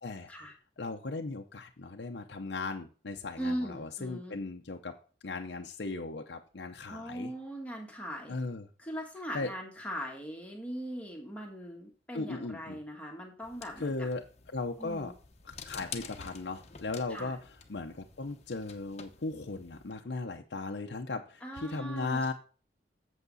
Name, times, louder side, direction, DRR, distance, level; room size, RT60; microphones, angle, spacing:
voice 1, 0.8-5.0 5.2-7.3 8.3-8.6 9.3-9.5 12.1-12.8 13.8-14.2 14.5-15.1 15.5-17.4 17.7-22.3, left 3 dB, 70° left, 3 dB, 0.7 m, -37 dB
voice 2, 3.4-4.4 6.9-8.4 8.8-13.9 14.8-15.1 17.1-17.4 21.4-22.3, equal, 10° left, -1 dB, 1.5 m, -40 dB
sound 1, 13.4-19.9, left 6 dB, 35° left, 0.9 m, -49 dB
8.2 x 7.3 x 4.0 m, 0.38 s
head